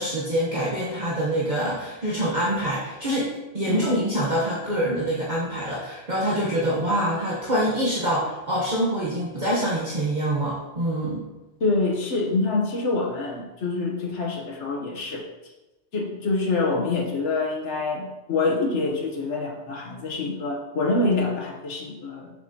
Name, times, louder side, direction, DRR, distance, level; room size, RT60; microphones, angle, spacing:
voice 1, 0.0-3.3 3.5-11.2, right 1 dB, 40° right, -6 dB, 1.2 m, -25 dB
voice 2, 11.6-15.2 15.9-22.3, left 3 dB, 90° left, 0 dB, 1.4 m, -26 dB
6.8 x 6.0 x 2.8 m, 1.1 s
omnidirectional pair, 1.2 m